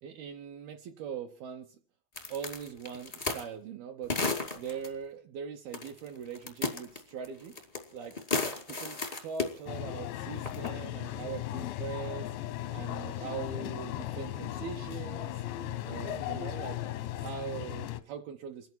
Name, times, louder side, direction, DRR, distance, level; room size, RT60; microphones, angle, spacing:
voice 1, 0.0-1.8 2.3-4.2 4.5-7.6 7.9-8.2 8.7-12.3 12.7-15.4 15.8-16.8 17.2-18.7, right 7 dB, 70° right, 3 dB, 2.5 m, -41 dB
sound 1, 2.1-3.5 4.1-4.9 5.7-6.1 6.3-7.8 8.1-9.5 10.4-10.7, left 3 dB, 35° left, 0.7 m, -33 dB
sound 2, 9.7-18.0, left 13 dB, 90° left, 3.2 m, -37 dB
29.0 x 10.5 x 4.5 m, 0.41 s
omnidirectional pair, 5.0 m